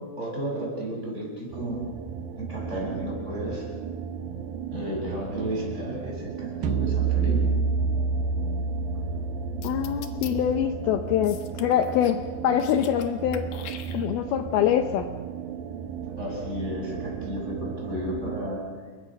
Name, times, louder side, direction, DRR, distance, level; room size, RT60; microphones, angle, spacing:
voice 1, 0.2-1.8 2.4-3.7 4.7-7.5 16.2-18.6, equal, 15° right, -2 dB, 7.6 m, -33 dB
sound 1, 1.5-18.5, right 7 dB, 65° right, 2.6 m, -36 dB
sound 2, 6.6-12.0, right 4 dB, 85° right, 2.0 m, -28 dB
voice 2, 9.6-13.5 13.9-15.1, left 10 dB, 85° left, 7 dB, 2.1 m, -24 dB
sound 3, 9.6-10.3 11.2-12.2 12.5-13.1 13.3-14.4, left 9 dB, 65° left, 3.0 m, -42 dB
30.0 x 22.5 x 6.4 m, 1.4 s
omnidirectional pair, 5.6 m